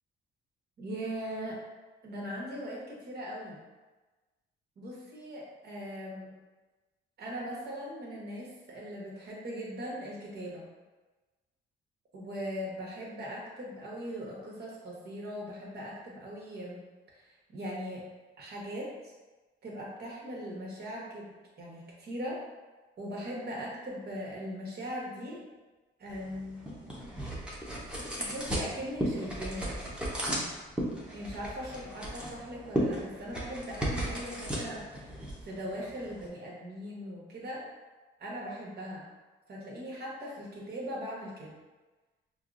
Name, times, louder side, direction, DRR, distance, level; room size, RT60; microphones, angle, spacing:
voice 1, 0.8-1.6 2.0-3.6 4.8-6.3 7.2-10.7 12.1-16.8 17.1-18.0 18.4-19.1 19.6-21.3 21.6-22.4 23.0-25.4 26.0-26.7 28.2-29.8 31.1-37.7 38.2-39.1 39.5-41.5, equal, 55° right, -4 dB, 1.2 m, -40 dB
sound 1, 26.1-36.3, equal, 5° right, 0.9 m, -36 dB
5.3 x 2.0 x 2.5 m, 1.2 s
cardioid pair, 90°, 20 cm